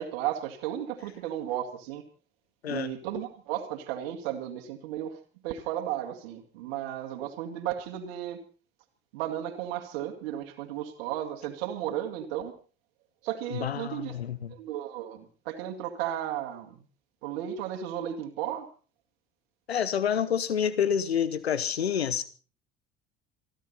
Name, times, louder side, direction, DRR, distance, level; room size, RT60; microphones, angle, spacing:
voice 1, 0.0-2.0 2.7-5.2 5.4-8.4 9.1-12.5 13.2-14.2 14.5-16.8 17.2-18.7, right 11 dB, 60° right, 4 dB, 2.2 m, -34 dB
voice 2, 13.5-14.5 19.7-22.2, left 8 dB, 80° left, 15 dB, 1.1 m, -28 dB
27.5 x 11.0 x 4.1 m, 0.39 s
figure-of-eight pair, 60°, 31 cm